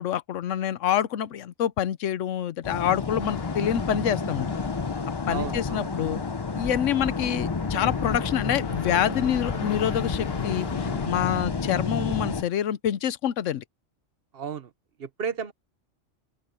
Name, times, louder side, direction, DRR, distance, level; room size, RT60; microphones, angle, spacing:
voice 1, 0.0-4.5 5.3-6.2 6.5-13.6, left 10 dB, 85° left, 1.1 m, -27 dB
sound 1, 2.6-12.4, left 4 dB, 30° left, 0.5 m, -30 dB
sound 2, 3.2-11.1, left 7 dB, 55° left, 1.3 m, -39 dB
voice 2, 5.3-5.9 14.3-14.7 15.0-15.5, right 7 dB, 55° right, 1.0 m, -33 dB
open air
omnidirectional pair, 1.3 m